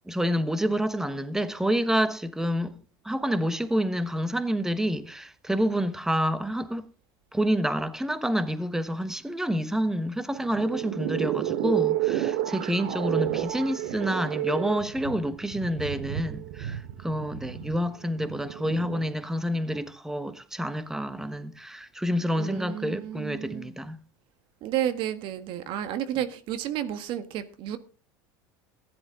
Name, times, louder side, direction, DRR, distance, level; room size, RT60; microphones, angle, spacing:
voice 1, 0.1-2.8 3.0-6.9 7.3-24.0, equal, 5° right, 1.0 m, -28 dB
sound 1, 10.4-19.1, right 13 dB, 75° right, 1.1 m, -31 dB
voice 2, 22.3-23.7 24.6-27.8, right 11 dB, 55° right, 1.5 m, -31 dB
15.0 x 10.5 x 3.7 m
supercardioid pair, 110°, 10 cm